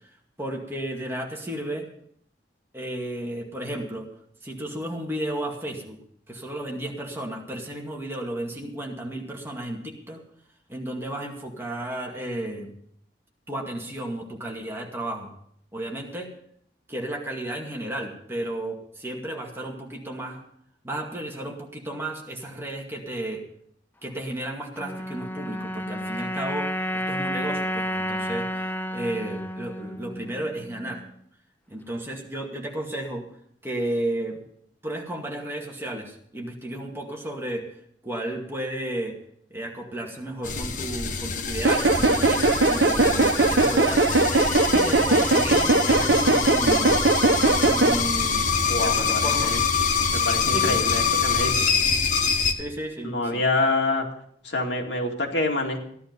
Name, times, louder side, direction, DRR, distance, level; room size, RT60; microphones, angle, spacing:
voice 1, 0.4-1.9 2.7-4.1 4.4-6.0 6.3-10.2 10.7-12.7 13.5-15.3 15.7-16.3 16.9-20.4 20.8-23.4 24.0-31.0 31.7-33.2 33.6-34.4 34.8-37.7 38.0-39.2 39.5-44.1 44.7-47.0 47.6-48.4 48.8-49.6 50.5-50.8 52.5-53.4, right 1 dB, 15° right, 0 dB, 2.2 m, -33 dB
sound 1, 24.8-31.2, equal, 10° left, 0.5 m, -31 dB
sound 2, 40.4-52.5, left 5 dB, 50° left, 1.2 m, -25 dB
sound 3, 41.6-48.0, right 2 dB, 80° right, 1.1 m, -20 dB
voice 2, 48.7-49.6 50.1-51.7 53.0-54.1 54.4-55.8, left 2 dB, 85° left, 1 dB, 2.5 m, -26 dB
15.5 x 11.0 x 5.4 m, 0.66 s
head